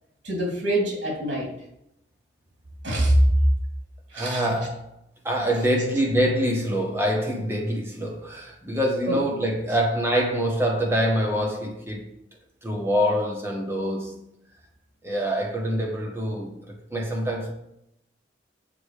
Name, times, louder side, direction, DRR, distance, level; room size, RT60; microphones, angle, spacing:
voice 1, 0.2-1.5 2.8-3.2 4.1-4.4 9.1-9.2, right 1 dB, 80° right, 3.0 m, -24 dB
voice 2, 4.1-4.9 5.2-12.1 12.6-14.2 15.0-17.5, equal, 15° right, 1.5 m, -25 dB
8.2 x 4.5 x 6.8 m
head